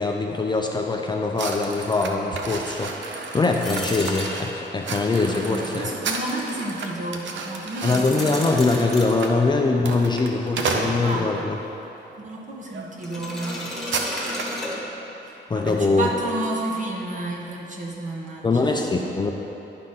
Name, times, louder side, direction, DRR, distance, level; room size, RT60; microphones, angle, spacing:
voice 1, 0.0-5.9 7.8-11.6 15.5-16.1 18.4-19.3, left 3 dB, 25° left, 1 dB, 0.5 m, -23 dB
sound 1, 1.4-11.5 12.1-12.3 12.7-12.9 13.1-14.6, right 3 dB, 80° right, 0.7 m, -32 dB
sound 2, 3.6-4.8 7.8-9.1 13.0-15.3, left 1 dB, ahead, 1.4 m, -33 dB
voice 2, 5.4-8.5 11.0-11.3 12.2-13.8 15.3-18.9, right 2 dB, 40° right, -2 dB, 1.2 m, -31 dB
10.5 x 3.9 x 5.6 m, 3.0 s
wide cardioid pair, 135°, 19 cm